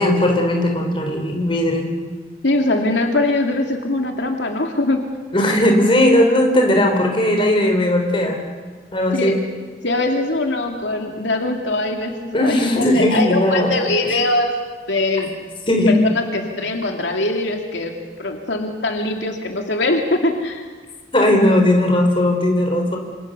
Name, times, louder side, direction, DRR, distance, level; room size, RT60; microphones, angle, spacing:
voice 1, 0.0-1.9 5.3-8.4 8.9-9.4 12.3-14.2 15.7-16.0 21.1-23.0, left 1 dB, 30° left, 2 dB, 4.4 m, -17 dB
voice 2, 2.4-5.0 9.1-9.4 9.8-14.5 14.9-15.3 15.9-17.9 18.2-20.6, left 2 dB, 80° left, 3 dB, 2.7 m, -21 dB
27.5 x 26.5 x 6.8 m, 1.4 s
head